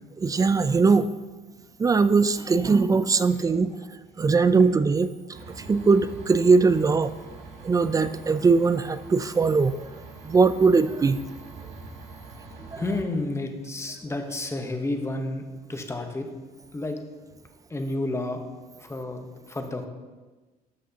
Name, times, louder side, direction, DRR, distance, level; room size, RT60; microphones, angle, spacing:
voice 1, 0.2-1.1 1.8-3.7 4.2-5.1 5.7-7.1 7.6-9.7 10.2-11.2 12.7-12.8, right 4 dB, 20° right, 14 dB, 0.3 m, -20 dB
sound 1, 5.3-13.0, right 3 dB, 85° right, 1.7 m, -44 dB
voice 2, 12.8-16.3 16.7-17.0 17.7-18.4 18.8-19.9, left 2 dB, 15° left, 5 dB, 0.9 m, -31 dB
12.5 x 6.0 x 2.8 m, 1.2 s
cardioid pair, 110°, 17 cm